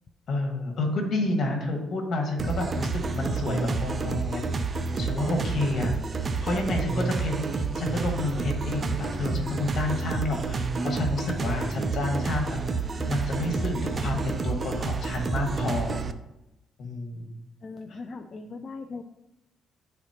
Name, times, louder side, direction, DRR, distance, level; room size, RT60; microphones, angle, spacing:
voice 1, 0.3-4.4 5.0-5.9 6.4-16.0 16.8-17.3 17.9-18.0, left 2 dB, 60° left, 2 dB, 1.6 m, -30 dB
sound 1, 2.4-16.1, right 4 dB, 35° right, 0.4 m, -29 dB
voice 2, 17.6-19.0, left 3 dB, 40° left, 6 dB, 0.4 m, -39 dB
10.0 x 4.2 x 2.9 m, 0.91 s
cardioid pair, 90°, 0 cm